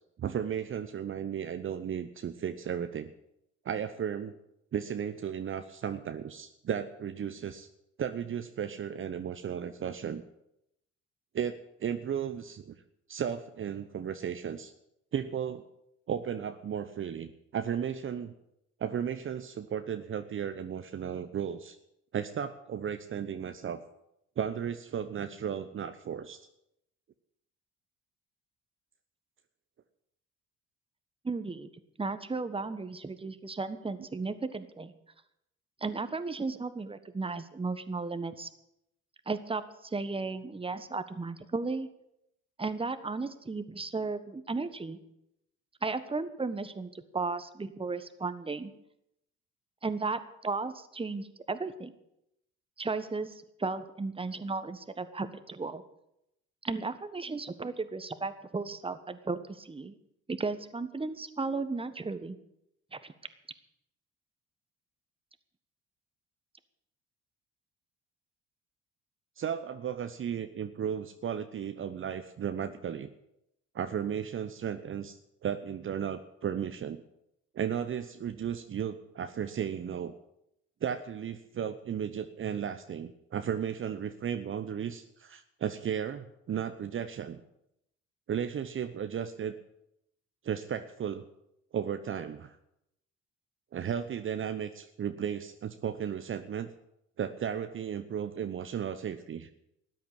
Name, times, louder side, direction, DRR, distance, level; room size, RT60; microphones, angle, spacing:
voice 1, 0.2-3.1 3.6-4.3 4.7-7.7 8.0-10.2 11.3-12.8 13.1-14.7 15.1-15.7 16.1-18.3 18.8-21.8 22.1-23.8 24.4-26.5 69.4-73.1 73.7-75.2 75.4-77.0 77.5-80.1 80.8-87.4 88.3-89.5 90.4-91.2 91.7-92.6 93.7-96.7 97.2-99.5, right 8 dB, 45° right, 9 dB, 0.9 m, -35 dB
voice 2, 31.2-31.7 32.0-34.9 35.8-38.5 39.3-41.9 42.6-45.0 45.8-48.7 49.8-51.9 52.8-55.8 56.6-60.0 60.3-62.4 62.9-63.1, right 3 dB, 20° right, 12 dB, 1.3 m, -35 dB
13.5 x 9.3 x 8.9 m, 0.81 s
supercardioid pair, 65°, 29 cm